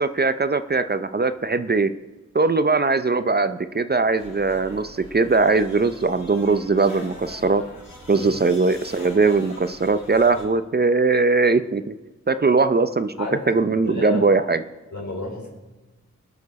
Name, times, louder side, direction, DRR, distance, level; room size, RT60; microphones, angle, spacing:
voice 1, 0.0-1.9 2.3-7.6 8.1-11.9 12.3-13.1 13.5-14.6, right 3 dB, 30° right, 11 dB, 0.6 m, -20 dB
sound 1, 4.2-10.4, left 1 dB, 85° left, 4.3 m, -43 dB
voice 2, 13.8-14.2 14.9-15.5, left 2 dB, 65° left, -1 dB, 4.3 m, -30 dB
20.0 x 6.8 x 4.2 m, 1.1 s
cardioid pair, 45°, 31 cm